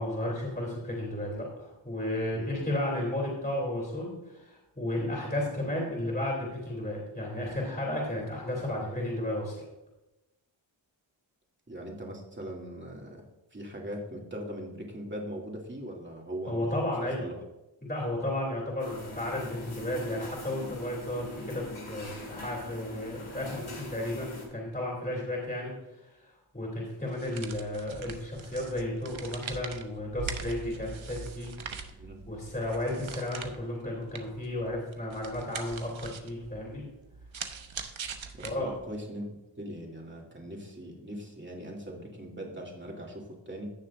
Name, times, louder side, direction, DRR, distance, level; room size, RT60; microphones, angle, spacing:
voice 1, 0.0-9.6 16.5-17.3 17.8-25.7 26.0-26.1 26.5-31.5 32.3-36.8 38.4-38.7, left 1 dB, 20° left, -4 dB, 3.0 m, -33 dB
voice 2, 11.7-13.2 13.5-17.4 31.9-32.2 38.3-43.7, equal, 25° right, -1 dB, 2.4 m, -40 dB
sound 1, 18.8-24.5, left 1 dB, 85° left, 2.3 m, -43 dB
sound 2, 27.1-39.0, right 6 dB, 80° right, 0.9 m, -42 dB
16.5 x 6.5 x 2.5 m, 0.97 s
wide cardioid pair, 70°, 47 cm